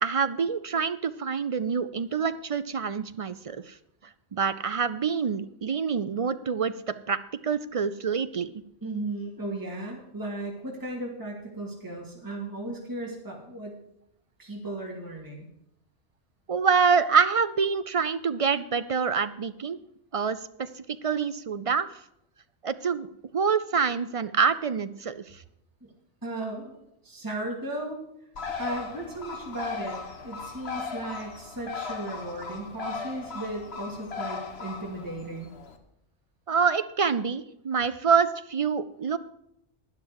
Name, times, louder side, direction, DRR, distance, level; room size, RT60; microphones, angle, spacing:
voice 1, 0.0-3.7 4.3-7.2 7.4-8.5 16.5-19.8 20.1-20.7 21.0-21.9 22.6-23.1 23.3-25.4 36.5-39.2, right 6 dB, 55° right, 13 dB, 0.4 m, -26 dB
voice 2, 8.8-13.8 14.4-15.5 26.2-26.8 27.0-28.0 28.6-30.0 30.2-35.5, right 2 dB, 15° right, -2 dB, 2.3 m, -36 dB
Bird, 28.4-35.8, left 5 dB, 60° left, 1.5 m, -37 dB
12.5 x 10.0 x 4.7 m, 0.79 s
omnidirectional pair, 1.2 m